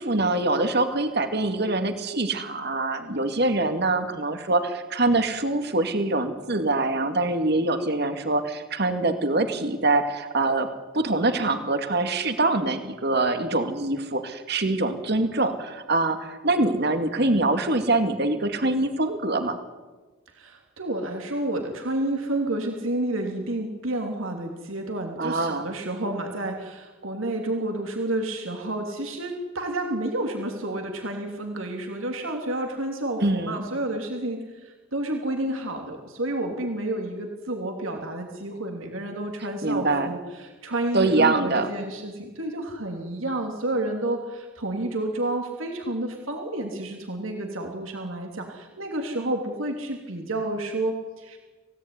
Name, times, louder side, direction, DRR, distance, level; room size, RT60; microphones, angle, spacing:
voice 1, 0.0-10.7 10.9-19.6 25.2-25.7 33.2-33.6 39.6-40.1 40.9-41.7, right 2 dB, 50° right, 7 dB, 2.3 m, -24 dB
voice 2, 20.3-51.4, right 1 dB, 75° right, 3 dB, 3.0 m, -30 dB
26.5 x 17.5 x 9.7 m, 1.3 s
head